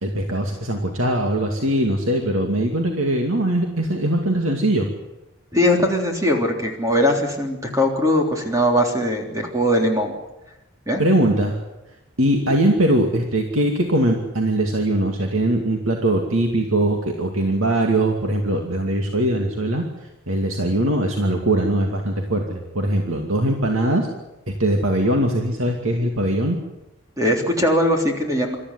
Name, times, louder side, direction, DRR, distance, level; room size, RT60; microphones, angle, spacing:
voice 1, 0.0-4.9 11.0-11.6 12.2-19.8 20.3-24.1 24.6-26.6, right 1 dB, 90° right, 2 dB, 2.5 m, -21 dB
voice 2, 5.5-10.2 10.9-11.3 27.2-28.6, equal, 15° right, 1 dB, 3.5 m, -20 dB
26.0 x 13.5 x 9.9 m, 0.97 s
head